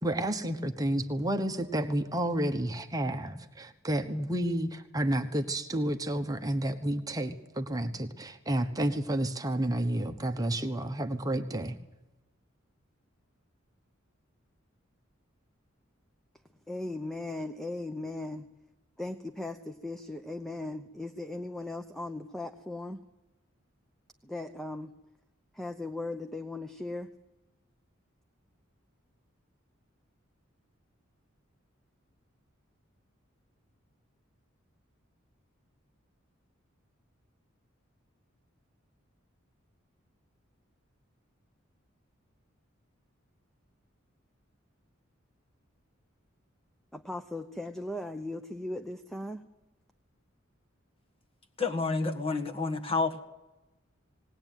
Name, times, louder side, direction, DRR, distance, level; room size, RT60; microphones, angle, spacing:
voice 1, 0.0-11.7, right 1 dB, 20° right, 6 dB, 1.1 m, -30 dB
voice 2, 16.7-18.5 19.0-23.0 24.2-24.9 25.5-27.1 46.9-49.4, left 2 dB, ahead, 7 dB, 0.8 m, -38 dB
voice 3, 51.6-53.2, left 3 dB, 30° left, 4 dB, 1.8 m, -29 dB
19.5 x 18.5 x 9.2 m, 1.0 s
head